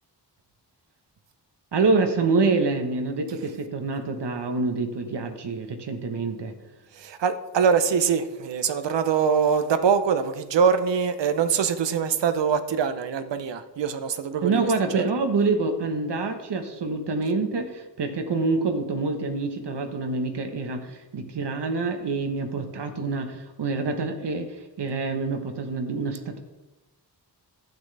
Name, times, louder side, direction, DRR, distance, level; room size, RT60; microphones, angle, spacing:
voice 1, 1.7-6.5 14.4-26.4, right 3 dB, 75° right, 5 dB, 1.2 m, -26 dB
voice 2, 7.0-15.1, right 6 dB, 90° right, 10 dB, 0.8 m, -23 dB
12.0 x 8.8 x 3.4 m, 1.1 s
wide cardioid pair, 105°, 42 cm